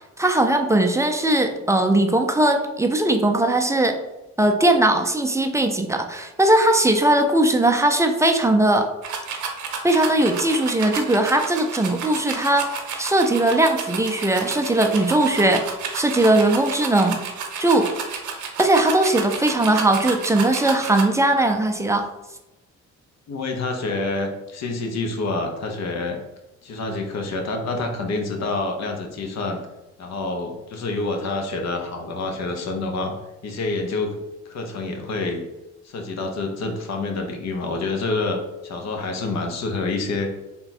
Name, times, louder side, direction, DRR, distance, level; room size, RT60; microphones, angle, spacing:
voice 1, 0.2-4.0 4.4-8.9 9.8-15.7 15.9-17.2 17.6-17.9 18.6-22.1, right 1 dB, 10° right, 4 dB, 0.4 m, -19 dB
sound 1, 9.0-21.0, right 6 dB, 75° right, 0.8 m, -31 dB
voice 2, 23.3-26.2 26.6-29.6 30.0-33.1 33.4-34.2 34.4-35.4 35.8-40.3, left 3 dB, 60° left, 4 dB, 0.8 m, -27 dB
3.6 x 2.3 x 4.1 m, 0.97 s
cardioid pair, 90°, 30 cm